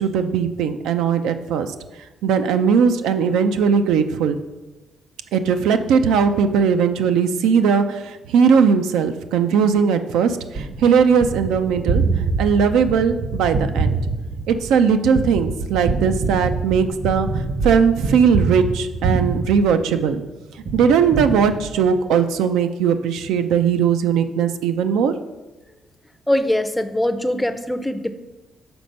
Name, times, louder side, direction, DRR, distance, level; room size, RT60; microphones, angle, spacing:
voice 1, 0.0-1.7 2.2-4.4 5.3-12.0 12.4-13.9 14.5-20.2 20.7-25.1, right 6 dB, 90° right, 8 dB, 0.4 m, -19 dB
Gunshot gunfire, 10.6-20.2 20.7-22.1, right 3 dB, 60° right, 1.1 m, -25 dB
voice 2, 26.3-28.1, left 1 dB, 5° left, 10 dB, 0.5 m, -22 dB
6.1 x 4.2 x 5.2 m, 1.1 s
cardioid pair, 90°, 0 cm